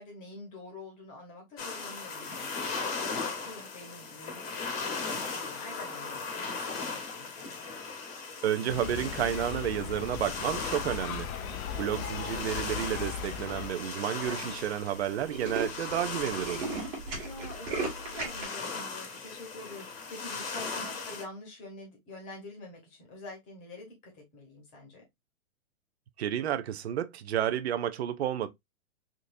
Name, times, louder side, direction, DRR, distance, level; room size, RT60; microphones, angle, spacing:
voice 1, 0.0-7.7 17.0-25.0, left 2 dB, 15° left, 1.0 m, -47 dB
sound 1, 1.6-21.2, left 4 dB, 45° left, 1.0 m, -38 dB
voice 2, 8.4-11.3 11.8-16.8 26.2-28.5, right 10 dB, 50° right, 0.5 m, -31 dB
sound 2, 8.7-13.7, left 9 dB, 80° left, 0.6 m, -38 dB
Tools, 12.4-12.8 13.4-13.5 13.7-13.8 14.1-14.3 14.6-14.7 15.0-18.4, right 3 dB, 25° right, 1.3 m, -36 dB
3.7 x 2.6 x 2.5 m
hypercardioid pair, 160°, 42 cm